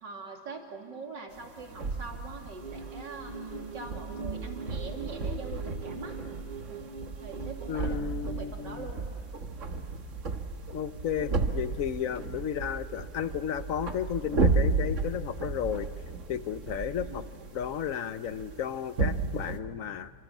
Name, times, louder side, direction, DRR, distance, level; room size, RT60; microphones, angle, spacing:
voice 1, 0.0-6.2 6.7-6.9 7.2-9.1 12.0-12.1 17.0-17.3, right 4 dB, 75° right, 2 dB, 3.5 m, -43 dB
sound 1, 1.3-19.6, right 4 dB, 45° right, 1.7 m, -34 dB
sound 2, 2.6-7.8, right 4 dB, 30° right, 1.1 m, -42 dB
voice 2, 7.7-8.9 10.7-15.9 16.3-17.2 17.5-20.1, left 8 dB, 55° left, 13 dB, 1.0 m, -33 dB
30.0 x 25.5 x 7.3 m, 2.5 s
omnidirectional pair, 1.9 m